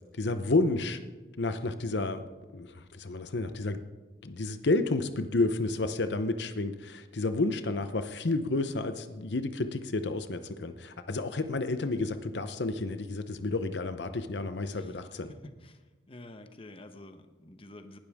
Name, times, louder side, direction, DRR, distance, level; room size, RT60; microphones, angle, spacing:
voice 1, 0.2-1.0 1.4-2.2 2.5-3.8 4.2-15.3, left 2 dB, 75° left, 10 dB, 0.8 m, -30 dB
voice 2, 15.4-15.8 16.1-18.0, left 1 dB, 30° left, 8 dB, 0.9 m, -48 dB
19.0 x 12.0 x 3.6 m, 1.2 s
head